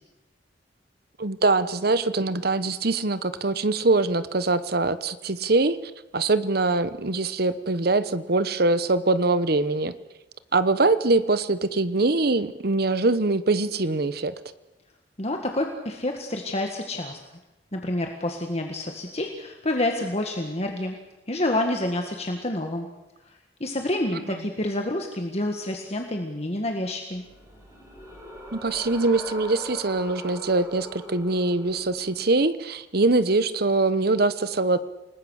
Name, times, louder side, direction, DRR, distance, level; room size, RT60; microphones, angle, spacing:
voice 1, 1.2-5.8 6.1-9.9 10.5-14.3 24.3-24.4 28.5-34.8, right 3 dB, 55° right, 13 dB, 1.1 m, -23 dB
voice 2, 15.2-17.2 17.7-21.0 21.3-22.9 23.3-27.2, left 1 dB, 35° left, 3 dB, 1.8 m, -28 dB
sound 1, 27.1-32.3, equal, 15° right, 5.3 m, -42 dB
29.0 x 20.0 x 6.5 m, 1.0 s
head